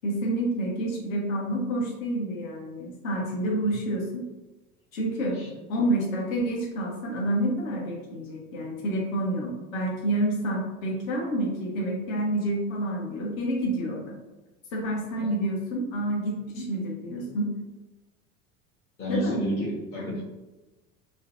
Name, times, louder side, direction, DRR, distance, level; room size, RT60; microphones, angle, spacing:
voice 1, 0.0-4.2 4.9-5.4 5.7-14.1 14.7-17.5 19.1-19.4, right 1 dB, 60° left, -2 dB, 0.8 m, -28 dB
voice 2, 3.5-3.8 5.3-5.5 15.2-15.3 19.0-20.2, equal, 30° left, -8 dB, 0.7 m, -31 dB
2.4 x 2.1 x 2.5 m, 1.1 s
figure-of-eight pair, 70°, 44 cm